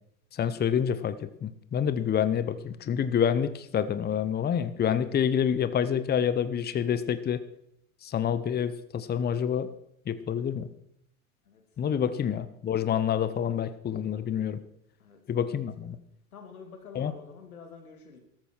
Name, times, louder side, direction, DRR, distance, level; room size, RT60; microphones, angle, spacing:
voice 1, 0.4-7.4 8.1-9.7 10.1-10.7 11.8-14.6 15.3-16.0 16.9-17.1, left 8 dB, 25° left, 13 dB, 0.9 m, -27 dB
voice 2, 11.5-12.1 15.0-15.2 15.5-15.6 16.3-18.2, left 6 dB, 85° left, 5 dB, 2.7 m, -48 dB
13.5 x 13.5 x 4.6 m, 0.74 s
hypercardioid pair, 85°, 42 cm